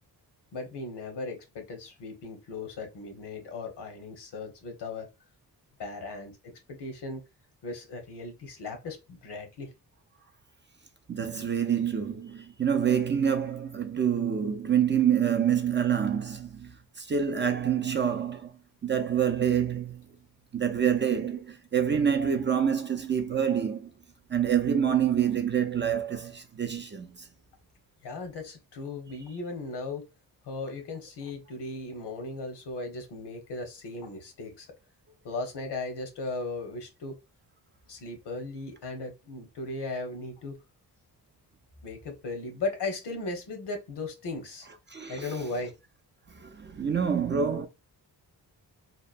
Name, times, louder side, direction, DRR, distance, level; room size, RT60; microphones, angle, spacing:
voice 1, 0.5-5.1 5.8-6.3 6.8-7.2 7.6-9.7 28.0-30.0 30.4-34.7 35.2-37.2 37.9-40.6 41.8-44.7 45.1-45.7, left 3 dB, 75° left, 1.0 m, -37 dB
voice 2, 11.1-18.5 18.8-20.0 20.5-23.9 24.3-27.3 44.9-45.3 46.3-47.7, right 8 dB, 30° right, 0.4 m, -27 dB
2.8 x 2.1 x 2.4 m
cardioid pair, 85°, 41 cm